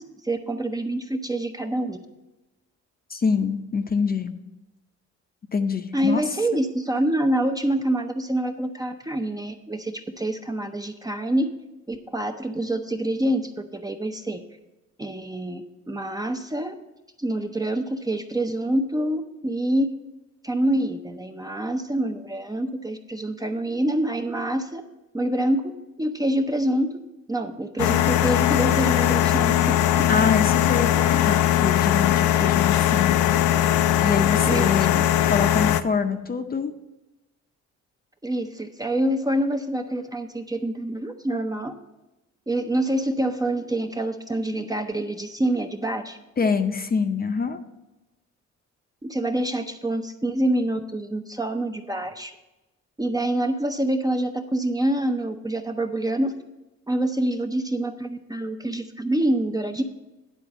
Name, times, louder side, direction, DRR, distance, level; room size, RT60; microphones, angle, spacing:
voice 1, 0.0-2.0 5.9-11.5 11.9-14.4 15.0-16.7 17.2-19.9 20.4-24.8 25.1-25.7 26.0-27.0 27.3-30.1 34.5-35.1 38.2-41.8 42.5-46.2 49.0-52.3 53.0-56.4 56.9-59.8, right 1 dB, 10° right, 5 dB, 0.6 m, -26 dB
voice 2, 3.1-4.3 5.5-6.2 30.1-33.3 34.0-36.7 46.4-47.6, left 5 dB, 30° left, 8 dB, 0.6 m, -25 dB
sound 1, 27.8-35.8, left 12 dB, 75° left, 0.5 m, -20 dB
10.0 x 3.9 x 7.0 m, 1.0 s
cardioid pair, 90°, 30 cm